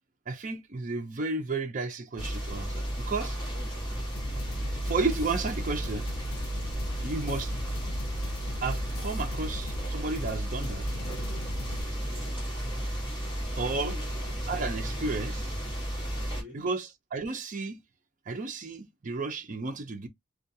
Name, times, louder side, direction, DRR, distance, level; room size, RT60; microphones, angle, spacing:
voice 1, 0.3-3.4 4.8-6.1 7.0-7.5 8.6-10.9 13.6-14.0 14.5-15.4 16.5-17.8 18.3-20.1, right 3 dB, 35° right, 0.4 m, -32 dB
sound 1, 2.2-16.4, equal, 20° left, 1.2 m, -33 dB
sound 2, 4.2-11.8, left 2 dB, 90° left, 0.5 m, -41 dB
voice 2, 11.8-12.4 13.8-14.3 14.9-15.2 16.1-16.7, left 5 dB, 5° right, 1.2 m, -48 dB
2.4 x 2.3 x 2.6 m
head